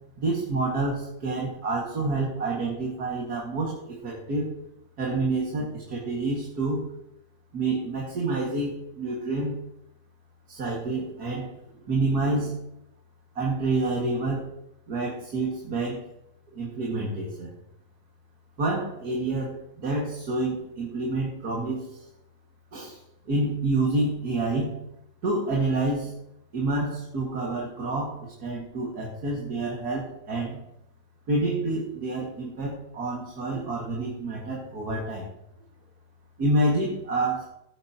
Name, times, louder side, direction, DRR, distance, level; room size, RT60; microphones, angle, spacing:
voice 1, 0.2-4.6 5.0-6.9 7.5-9.6 10.5-11.5 11.8-12.6 13.4-14.5 14.9-16.1 16.5-17.5 18.6-22.1 22.7-23.0 23.3-24.8 25.2-26.2 26.5-30.6 31.3-35.3 36.4-37.5, right 2 dB, 50° right, -2 dB, 2.3 m, -28 dB
16.5 x 8.9 x 2.9 m, 0.80 s
omnidirectional pair, 2.2 m